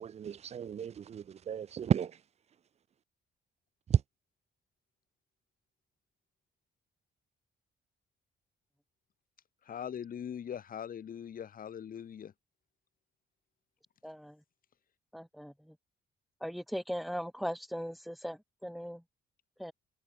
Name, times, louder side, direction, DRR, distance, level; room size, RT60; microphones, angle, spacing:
voice 1, 0.0-2.1 3.9-4.0, right 8 dB, 35° right, 0.4 m, -31 dB
voice 2, 9.7-12.3, left 8 dB, 45° left, 0.9 m, -41 dB
voice 3, 14.0-14.4 15.1-15.8 16.4-19.0 19.6-19.7, equal, ahead, 2.3 m, -39 dB
cardioid pair, 90°, 20 cm